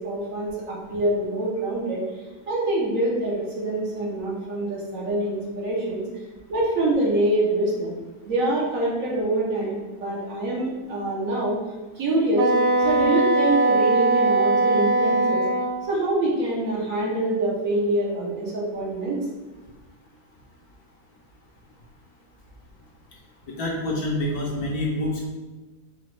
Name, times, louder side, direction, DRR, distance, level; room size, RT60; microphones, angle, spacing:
voice 1, 0.0-2.0 2.5-6.0 6.5-8.0 8.2-11.6 11.9-12.5 12.8-15.5 15.8-19.2, right 1 dB, 60° right, -4 dB, 1.2 m, -25 dB
Wind instrument woodwind instrument, 12.4-15.8, right 2 dB, 85° right, 1.2 m, -20 dB
voice 2, 23.5-25.3, left 1 dB, 70° left, -2 dB, 1.2 m, -27 dB
4.9 x 2.3 x 3.2 m, 1.2 s
omnidirectional pair, 1.8 m